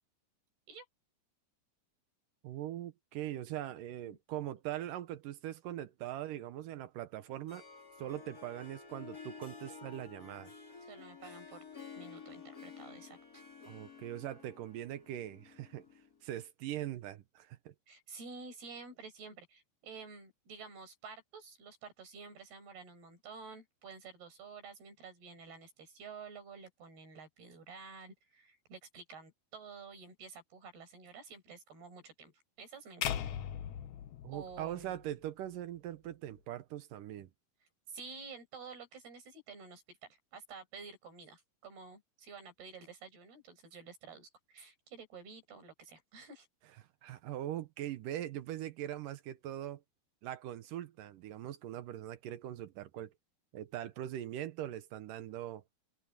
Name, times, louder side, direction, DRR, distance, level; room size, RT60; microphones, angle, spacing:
voice 1, 2.4-7.6 8.0-10.5 13.7-15.9 16.2-17.7 34.2-37.3 47.0-49.8 50.2-53.1 53.5-55.6, right 12 dB, 70° right, 2.3 m, -41 dB
voice 2, 4.1-4.6 10.8-11.6 11.9-13.4 17.9-33.3 34.3-35.0 37.9-46.5, right 5 dB, 90° right, 8.4 m, -51 dB
Harp, 7.2-16.2, left 5 dB, 30° left, 2.3 m, -52 dB
sound 1, 33.0-35.3, left 10 dB, 65° left, 2.1 m, -39 dB
omnidirectional pair, 4.4 m